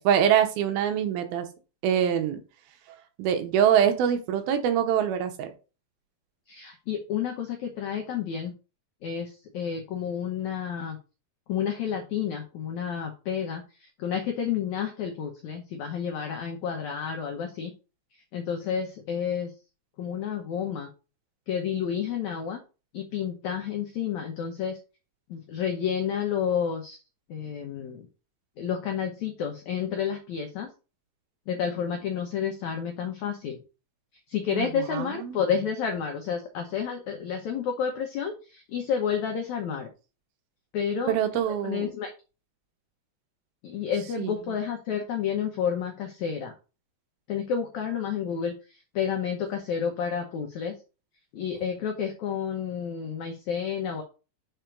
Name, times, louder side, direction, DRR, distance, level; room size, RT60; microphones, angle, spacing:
voice 1, 0.0-1.5 1.8-2.4 3.2-5.5 34.5-35.4 41.1-41.9 44.2-44.5, right 9 dB, 80° right, 6 dB, 2.5 m, -24 dB
voice 2, 6.5-8.5 9.0-11.0 11.5-17.7 18.3-19.5 20.0-20.9 21.5-22.6 22.9-24.8 25.3-27.0 27.3-28.1 28.6-30.7 31.5-33.6 34.3-39.9 40.7-41.1 41.6-42.1 43.6-46.5 47.3-48.5 48.9-50.7 51.3-54.0, left 7 dB, 85° left, 3 dB, 1.6 m, -30 dB
5.6 x 4.5 x 5.1 m, 0.33 s
omnidirectional pair, 4.6 m